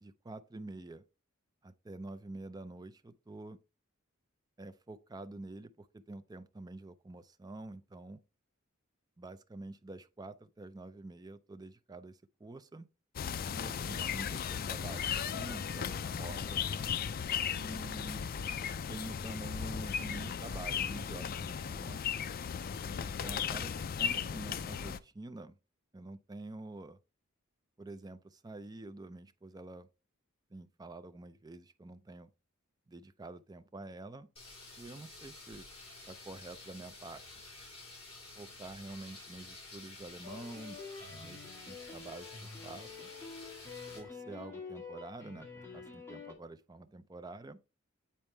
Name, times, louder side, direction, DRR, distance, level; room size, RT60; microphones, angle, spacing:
voice 1, 0.0-1.0 1.6-3.6 4.6-8.2 9.2-12.9 13.5-16.6 17.5-18.2 18.9-22.3 23.0-25.6 25.9-27.0 27.8-29.9 30.5-32.3 32.9-34.3 34.8-35.7 36.1-37.2 38.4-40.8 41.1-43.1 43.9-47.6, right 2 dB, 20° right, 0.4 m, -47 dB
sound 1, 13.2-25.0, left 7 dB, 45° left, 0.4 m, -36 dB
Washer Fill (loop), 34.4-44.0, left 2 dB, 30° left, 3.7 m, -51 dB
sound 2, 40.2-46.3, left 5 dB, 10° left, 1.9 m, -48 dB
8.9 x 4.3 x 3.3 m
head